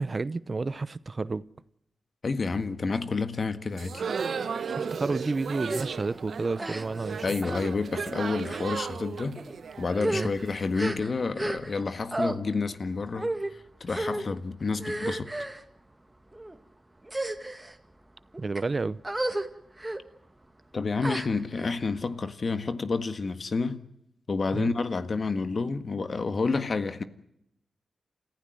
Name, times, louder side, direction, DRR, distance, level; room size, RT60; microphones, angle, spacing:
voice 1, 0.0-1.5 4.8-7.3 10.1-10.3 18.4-19.0 24.5-24.7, right 3 dB, 45° right, 0.8 m, -30 dB
voice 2, 2.2-4.0 7.2-9.4 9.8-15.3 20.7-23.8 24.3-27.0, left 4 dB, 55° left, 1.6 m, -29 dB
sound 1, 3.7-10.7, right 6 dB, 75° right, 1.2 m, -35 dB
sound 2, 5.7-5.9 6.6-7.1 7.4-7.7 8.4-8.7 9.4-9.5 9.9-11.8 12.1-12.4 13.2-13.5 13.9-14.3 14.8-15.6 16.3-16.6 17.0-17.7 18.3-18.6 19.0-19.5 19.8-20.0 21.0-21.7, right 1 dB, 20° right, 2.2 m, -32 dB
29.0 x 15.0 x 7.9 m
cardioid pair, 50°, 0 cm